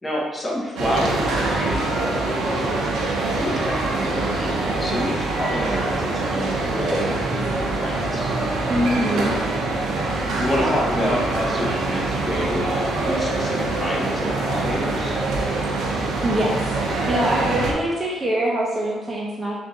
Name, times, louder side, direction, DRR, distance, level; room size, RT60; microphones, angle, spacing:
voice 1, 0.0-2.9 3.3-8.3 10.3-15.2, left 1 dB, 20° left, -3 dB, 0.9 m, -28 dB
sound 1, 0.8-17.7, right 2 dB, 80° right, 0.7 m, -24 dB
voice 2, 8.7-9.3 10.6-11.2 16.2-19.6, right 1 dB, 20° right, -5 dB, 0.6 m, -24 dB
3.5 x 2.5 x 3.9 m, 1.3 s
cardioid pair, 90°, 0 cm